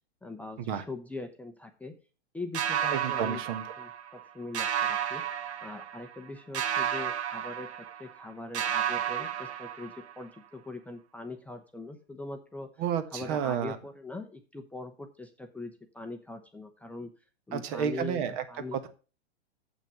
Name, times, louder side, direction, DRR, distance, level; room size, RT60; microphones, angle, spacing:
voice 1, 0.2-1.9 2.3-3.4 3.8-12.7 13.1-17.1 17.5-18.8, left 3 dB, 5° left, 4 dB, 0.7 m, -42 dB
sound 1, 2.5-4.3 4.5-6.2 6.5-8.3 8.5-10.2, right 9 dB, 80° right, 1.1 m, -32 dB
voice 2, 2.9-3.6 12.8-13.8 17.5-18.4 18.7-18.9, right 8 dB, 50° right, 10 dB, 1.5 m, -31 dB
7.4 x 5.9 x 6.8 m, 0.35 s
hypercardioid pair, 120°, 33 cm